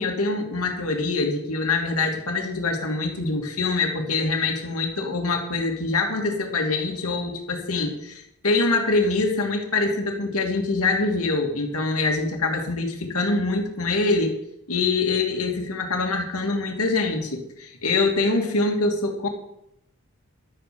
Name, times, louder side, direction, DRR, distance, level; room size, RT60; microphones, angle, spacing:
voice 1, 0.0-14.3 14.7-19.3, left 3 dB, 85° left, 3 dB, 2.4 m, -24 dB
12.0 x 8.7 x 6.9 m, 0.79 s
head